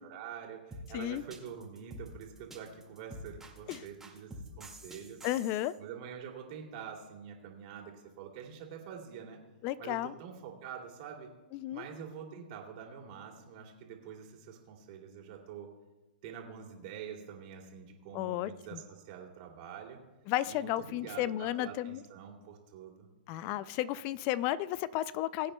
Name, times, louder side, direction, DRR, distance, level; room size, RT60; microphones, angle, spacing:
voice 1, 0.0-4.3 4.6-5.2 5.8-9.4 9.8-11.4 11.7-15.7 16.2-20.0 20.4-23.1, right 7 dB, 50° right, 1 dB, 2.6 m, -46 dB
sound 1, 0.7-5.7, right 1 dB, 5° right, 1.9 m, -47 dB
voice 2, 5.2-5.7 9.6-10.1 11.5-11.9 18.1-18.8 20.3-22.0 23.3-25.5, left 14 dB, 40° left, 18 dB, 0.4 m, -33 dB
21.5 x 8.7 x 2.2 m, 1.1 s
hypercardioid pair, 120°, 5 cm